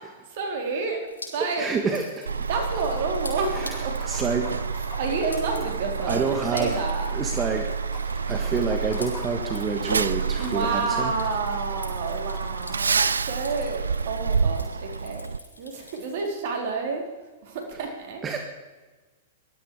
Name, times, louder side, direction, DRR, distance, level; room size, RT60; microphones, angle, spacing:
voice 1, 0.3-1.0 1.3-1.7 2.5-4.0 5.0-6.2 6.5-7.1 10.4-15.3 15.6-17.1 17.4-18.2, right 4 dB, 55° right, 3 dB, 4.1 m, -29 dB
Drip, 1.1-16.3, left 2 dB, 90° left, 6.1 m, -46 dB
voice 2, 1.6-2.5 3.5-3.7 4.0-4.6 6.1-6.7 7.1-7.7 8.3-11.1 18.2-18.4, right 5 dB, 25° right, 4 dB, 1.7 m, -28 dB
Truck, 2.3-15.4, right 5 dB, 85° right, 0.5 m, -29 dB
Liquid, 2.7-12.6, left 2 dB, 20° left, 6.9 m, -44 dB
19.0 x 13.0 x 4.9 m, 1.3 s
hypercardioid pair, 105°, 0 cm